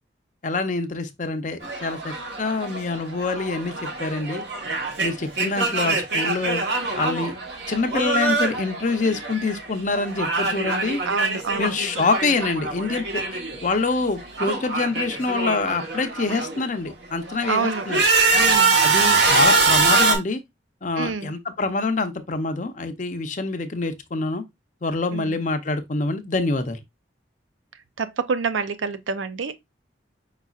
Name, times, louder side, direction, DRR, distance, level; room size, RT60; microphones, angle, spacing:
voice 1, 0.4-4.4 5.0-6.6 6.9-7.3 7.7-11.0 11.6-18.0 18.8-20.4 20.8-24.4 24.8-26.8, left 3 dB, 40° left, 0.6 m, -26 dB
sound 1, 1.6-9.6 9.9-13.7 13.9-16.6 17.1-20.2, right 3 dB, 65° right, 1.3 m, -23 dB
voice 2, 11.1-11.7 17.5-17.9 18.4-18.8 21.0-21.3 25.1-25.3 28.0-29.6, right 5 dB, 90° right, 0.6 m, -27 dB
5.3 x 4.1 x 2.4 m
head